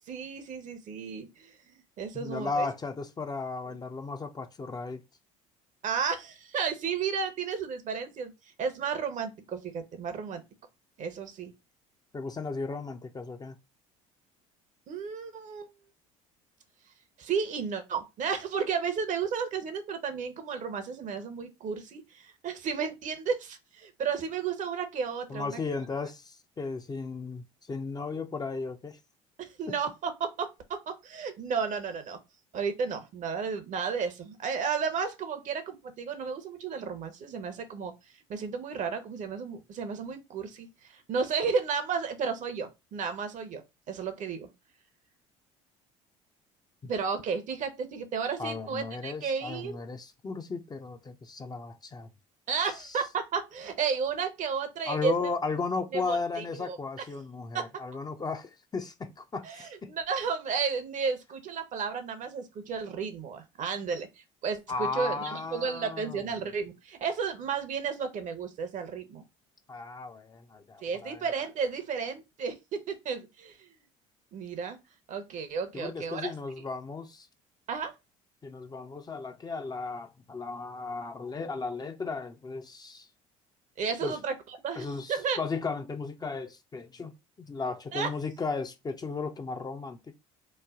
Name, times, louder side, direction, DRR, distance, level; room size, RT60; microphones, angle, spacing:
voice 1, 0.1-1.6 2.0-2.7 5.8-8.3 8.6-10.4 11.0-11.5 14.9-15.7 17.2-25.6 29.4-32.2 32.5-37.9 38.3-43.6 43.9-44.5 46.9-49.7 52.5-55.3 55.9-56.8 57.5-57.6 59.4-69.2 70.8-73.7 74.3-74.8 75.1-76.3 77.7-77.9 83.8-85.4 87.9-88.1, right 6 dB, 50° right, 0.8 m, -33 dB
voice 2, 2.1-5.0 12.1-13.6 25.3-29.0 29.7-29.8 46.8-46.9 48.4-52.1 54.9-59.9 64.7-66.3 69.7-71.2 75.7-77.3 78.4-83.1 84.0-84.2 84.8-90.1, left 4 dB, 25° left, 0.5 m, -35 dB
3.2 x 2.1 x 3.6 m
hypercardioid pair, 65°, 17 cm